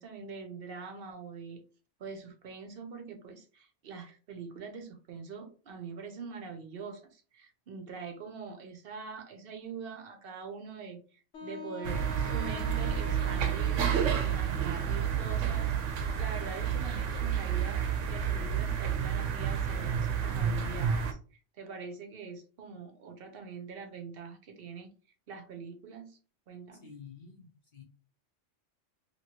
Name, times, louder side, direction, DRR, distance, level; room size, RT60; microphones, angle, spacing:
voice 1, 0.0-1.6 2.0-24.9 25.3-26.2 26.5-26.9, right 5 dB, 60° right, 5 dB, 0.7 m, -44 dB
Wind instrument woodwind instrument, 11.3-15.4, left 4 dB, 75° left, 1.0 m, -44 dB
sound 1, 11.8-21.1, right 8 dB, 85° right, 0.9 m, -30 dB
voice 2, 26.8-27.8, left 6 dB, 45° left, 0 dB, 0.8 m, -50 dB
2.9 x 2.9 x 2.8 m, 0.38 s
omnidirectional pair, 1.3 m